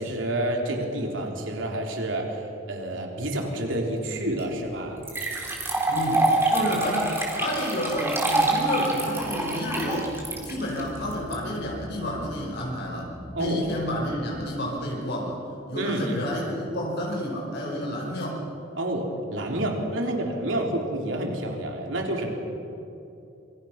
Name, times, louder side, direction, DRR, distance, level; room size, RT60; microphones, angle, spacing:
voice 1, 0.0-2.4 2.7-5.0 13.3-13.6 15.7-16.3 18.8-22.3, right 1 dB, 70° right, 1 dB, 3.9 m, -29 dB
sound 1, 4.4-4.5 5.0-11.3, right 2 dB, 15° right, 3.9 m, -26 dB
voice 2, 5.9-10.1 10.4-13.1 13.4-15.4 15.7-18.4 20.0-20.1, equal, 60° left, -2 dB, 5.1 m, -30 dB
sound 2, 8.7-14.5, equal, 10° left, 5.1 m, -44 dB
27.0 x 24.5 x 6.0 m, 2.9 s
head